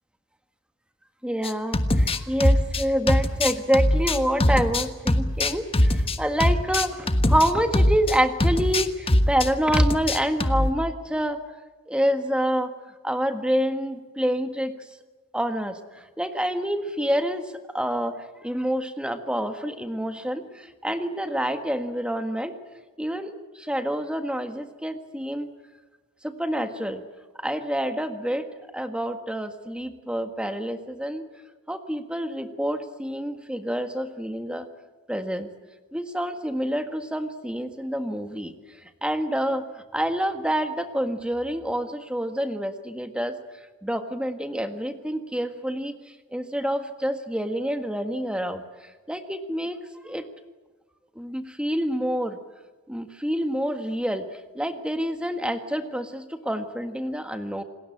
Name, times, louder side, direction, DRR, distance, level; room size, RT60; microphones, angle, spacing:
voice 1, 1.2-11.4 11.9-12.7 13.0-14.7 15.3-18.1 18.4-22.5 23.0-25.5 26.2-27.0 27.4-28.5 28.7-31.3 31.7-34.7 35.1-35.5 35.9-38.5 39.0-39.7 39.9-43.4 43.8-46.0 46.3-48.6 49.1-50.2 51.1-52.4 52.9-54.3 54.5-57.6, equal, 5° right, 8 dB, 1.6 m, -27 dB
sound 1, 1.4-8.2 8.4-9.5 9.7-10.7, left 1 dB, 25° left, 1.3 m, -21 dB
28.0 x 20.0 x 8.7 m, 1.3 s
head